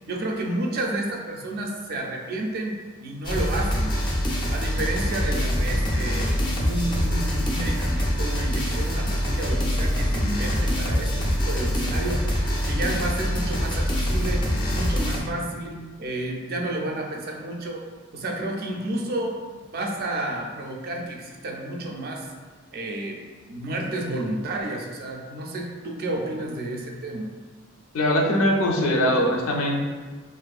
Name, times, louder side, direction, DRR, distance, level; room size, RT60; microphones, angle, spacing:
voice 1, 0.1-4.0 4.5-17.8 18.1-19.4 19.7-22.3 22.7-23.2 23.5-27.3, right 1 dB, 50° right, 0 dB, 0.4 m, -31 dB
sound 1, 3.2-15.2, equal, 20° left, 0.3 m, -24 dB
voice 2, 27.9-29.8, equal, 85° left, 0 dB, 0.4 m, -21 dB
2.5 x 2.4 x 2.3 m, 1.4 s
head